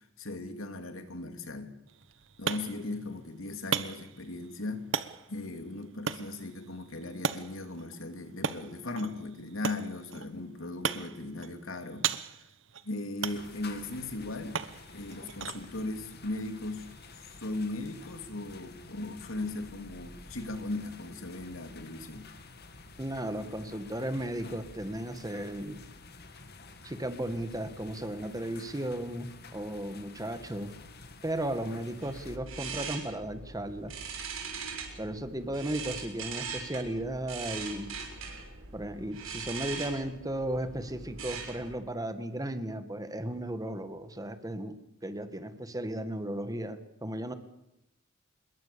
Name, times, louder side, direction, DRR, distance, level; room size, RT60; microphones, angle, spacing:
voice 1, 0.0-1.8 2.4-4.9 5.3-12.5 12.8-14.6 14.9-16.9 17.4-22.3, left 2 dB, 80° left, 7 dB, 2.9 m, -38 dB
sound 1, 1.9-17.5, right 6 dB, 65° right, 1.2 m, -39 dB
sound 2, 13.3-32.4, left 3 dB, 55° left, 2.4 m, -50 dB
voice 2, 23.0-25.8 26.8-30.7 31.2-33.9 35.0-37.9 38.7-44.8 45.0-47.3, right 1 dB, 20° right, 10 dB, 1.9 m, -35 dB
sound 3, 32.0-41.7, right 5 dB, 80° right, 6.0 m, -41 dB
26.5 x 22.0 x 7.0 m, 0.84 s
head